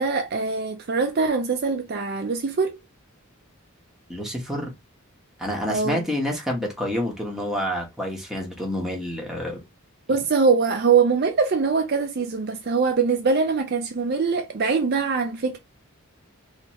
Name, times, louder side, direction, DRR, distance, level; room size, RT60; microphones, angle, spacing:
voice 1, 0.0-2.8 5.7-6.0 10.1-15.6, right 5 dB, 50° right, 0.5 m, -23 dB
voice 2, 4.1-4.7 5.4-9.6, equal, ahead, 1.0 m, -28 dB
3.2 x 2.9 x 2.9 m
head